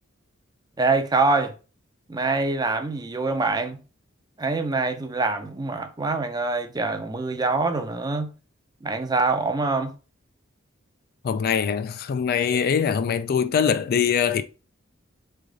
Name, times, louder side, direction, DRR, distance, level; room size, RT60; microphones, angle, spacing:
voice 1, 0.8-1.5 2.1-3.8 4.4-8.3 8.8-9.9, right 3 dB, 20° right, 0.5 m, -24 dB
voice 2, 11.2-14.4, left 7 dB, 50° left, 0.3 m, -23 dB
3.7 x 3.4 x 3.7 m
head